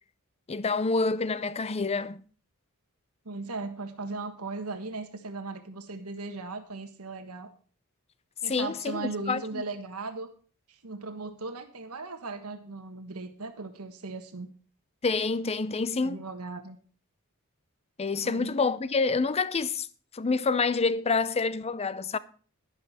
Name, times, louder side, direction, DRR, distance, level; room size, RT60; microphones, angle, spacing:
voice 1, 0.5-2.2 8.5-9.6 15.0-16.2 18.0-19.9 20.1-22.2, left 4 dB, 30° left, 0.6 m, -27 dB
voice 2, 3.2-7.5 8.4-10.3 10.7-14.5 16.0-16.8 18.2-18.5, right 3 dB, 85° right, 1.4 m, -37 dB
11.5 x 11.0 x 4.2 m
head